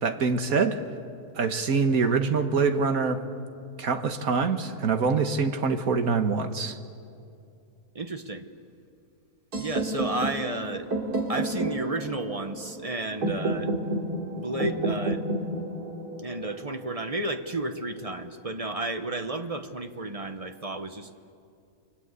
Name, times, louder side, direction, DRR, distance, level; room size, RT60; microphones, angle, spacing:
voice 1, 0.0-0.8 1.4-3.2 3.8-6.8, right 5 dB, 70° right, 7 dB, 1.8 m, -25 dB
voice 2, 7.9-8.5 9.6-10.9 11.3-13.7 14.3-15.2 16.2-21.1, right 2 dB, 25° right, 7 dB, 1.1 m, -32 dB
sound 1, 9.5-17.5, right 2 dB, 85° right, 3.6 m, -31 dB
29.5 x 23.0 x 8.3 m, 2.5 s
omnidirectional pair, 1.6 m